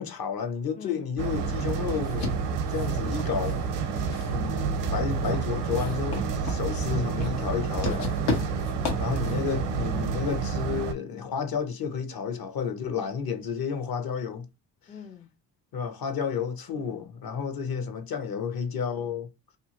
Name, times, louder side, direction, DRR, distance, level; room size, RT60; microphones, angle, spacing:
voice 1, 0.0-2.4 2.7-3.6 4.3-8.1 9.0-14.5 15.7-19.3, left 6 dB, 55° left, 0.8 m, -31 dB
voice 2, 0.8-1.1 3.9-4.3 6.7-7.1 8.3-9.0 14.9-15.3 16.8-17.1, left 7 dB, 20° left, 0.3 m, -45 dB
sound 1, 1.2-10.9, right 5 dB, 70° right, 0.7 m, -29 dB
sound 2, 1.9-9.5, left 4 dB, 85° left, 1.0 m, -36 dB
2.6 x 2.4 x 2.8 m
supercardioid pair, 60°, 43 cm